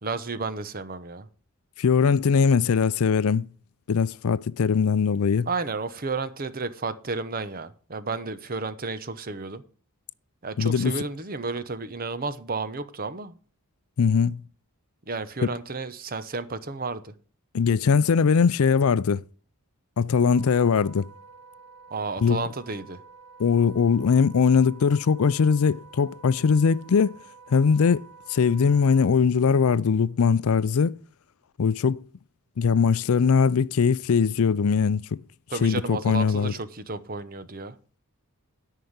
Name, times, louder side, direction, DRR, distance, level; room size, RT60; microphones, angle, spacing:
voice 1, 0.0-1.3 5.5-9.6 10.4-13.4 15.1-17.1 21.9-23.0 35.5-37.8, right 3 dB, 40° right, 0.9 m, -32 dB
voice 2, 1.8-3.5 3.9-5.5 10.6-11.0 14.0-14.4 17.5-19.2 20.0-21.1 22.2-22.4 23.4-27.2 27.5-30.9 31.6-32.0 32.6-35.2 35.6-36.5, left 6 dB, 70° left, 0.4 m, -21 dB
Wind instrument woodwind instrument, 20.1-29.1, right 4 dB, 80° right, 1.2 m, -50 dB
13.0 x 5.7 x 8.0 m
head